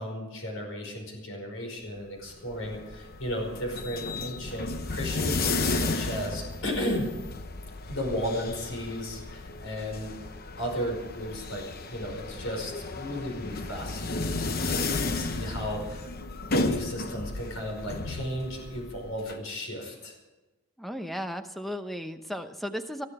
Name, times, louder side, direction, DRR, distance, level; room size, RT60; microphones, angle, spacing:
voice 1, 0.0-7.1 7.9-10.1 10.6-16.1 16.5-20.1, equal, 65° left, 2 dB, 5.0 m, -34 dB
sound 1, 2.3-19.3, left 3 dB, 45° left, 0.9 m, -33 dB
voice 2, 20.8-23.0, equal, ahead, 7 dB, 0.9 m, -35 dB
20.0 x 13.0 x 4.9 m, 1.2 s
head